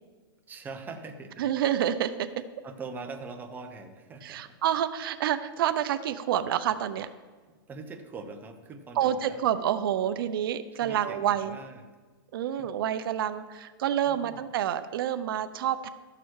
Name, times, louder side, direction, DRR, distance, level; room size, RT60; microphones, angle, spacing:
voice 1, 0.5-1.5 2.6-4.5 7.7-9.5 10.8-11.9 12.5-12.7 14.1-14.4, right 4 dB, 15° right, 4 dB, 1.0 m, -42 dB
voice 2, 1.4-2.3 4.2-7.1 9.0-11.6 12.3-15.9, right 10 dB, 65° right, 11 dB, 0.6 m, -28 dB
13.0 x 6.8 x 4.7 m, 1.4 s
supercardioid pair, 150°, 13 cm